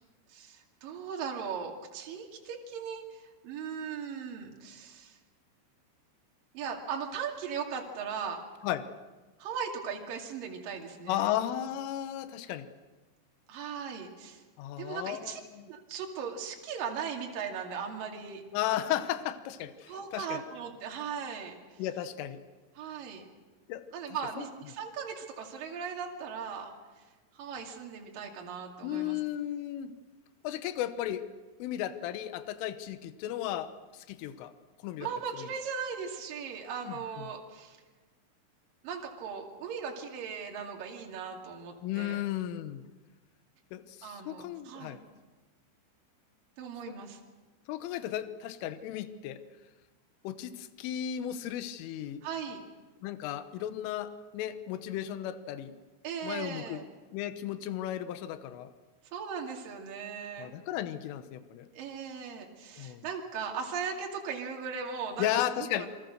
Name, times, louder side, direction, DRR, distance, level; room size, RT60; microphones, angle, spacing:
voice 1, 0.3-5.2 6.5-8.4 9.4-11.3 13.5-14.4 14.8-15.4 15.7-18.4 19.9-21.8 22.8-23.3 23.9-27.0 27.3-29.2 35.0-37.8 38.8-42.2 44.0-45.0 46.6-47.2 52.2-52.6 56.0-56.8 59.1-60.5 61.8-65.3 65.8-65.9, right 6 dB, 50° right, 1 dB, 3.7 m, -38 dB
voice 2, 11.1-12.7 14.6-15.7 18.5-20.4 21.8-22.4 23.7-24.5 28.8-29.9 30.4-31.3 31.6-34.5 34.8-35.1 35.4-35.5 36.8-37.3 41.8-42.8 43.7-45.0 46.9-47.0 47.7-49.4 50.3-52.2 53.0-55.7 56.2-56.8 57.1-58.7 60.4-61.7 62.8-63.1 65.2-65.9, left 12 dB, 80° left, 11 dB, 3.6 m, -35 dB
27.0 x 24.0 x 6.5 m, 1.3 s
omnidirectional pair, 5.8 m